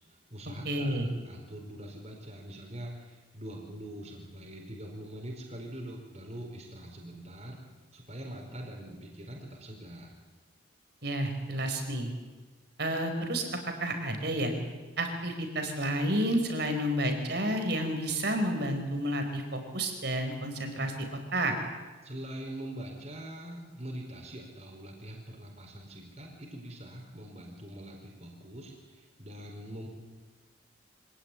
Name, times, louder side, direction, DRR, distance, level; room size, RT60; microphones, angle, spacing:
voice 1, 0.1-7.6 7.9-10.1 22.0-29.9, right 1 dB, 35° right, 0 dB, 4.7 m, -43 dB
voice 2, 0.6-1.1 11.0-12.1 12.8-13.5 13.8-14.5 15.0-21.5, right 1 dB, 55° right, 6 dB, 4.5 m, -30 dB
25.0 x 17.5 x 9.8 m, 1.3 s
head